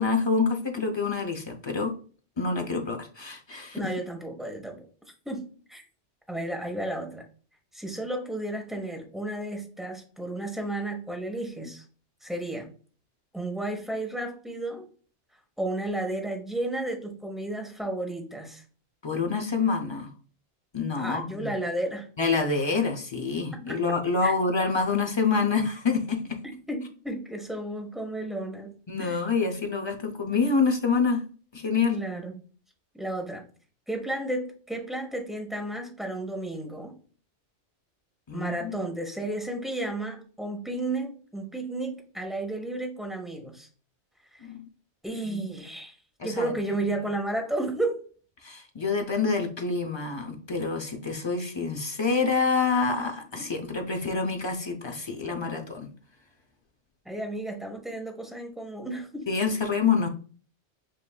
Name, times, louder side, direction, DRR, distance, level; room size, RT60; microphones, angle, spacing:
voice 1, 0.0-1.9 2.4-3.9 19.0-20.1 20.7-21.5 22.2-26.4 28.9-31.2 31.5-32.0 38.3-38.7 44.4-44.6 45.2-45.4 46.2-46.5 48.4-55.9 59.3-60.1, left 4 dB, 35° left, 3 dB, 0.5 m, -27 dB
voice 2, 3.7-4.9 5.3-5.8 6.3-7.2 7.7-11.8 12.2-12.7 13.3-14.9 15.6-18.6 21.0-22.1 22.7-22.8 23.7-23.8 24.2-24.3 26.7-28.7 29.0-29.2 31.9-32.4 32.9-33.4 33.9-36.9 38.3-43.7 44.3-44.5 45.0-46.0 46.2-48.0 57.0-59.3, right 1 dB, ahead, 1 dB, 0.8 m, -33 dB
7.4 x 2.6 x 2.3 m, 0.40 s
omnidirectional pair, 1.2 m